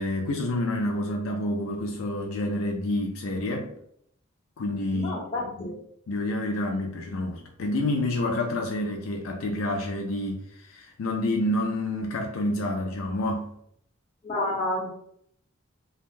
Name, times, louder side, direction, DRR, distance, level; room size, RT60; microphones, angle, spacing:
voice 1, 0.0-3.7 4.6-5.7 6.1-13.5, left 1 dB, 80° left, 2 dB, 0.4 m, -28 dB
voice 2, 4.9-5.7 14.2-14.9, left 1 dB, 30° left, -6 dB, 1.0 m, -29 dB
3.3 x 2.2 x 2.5 m, 0.69 s
head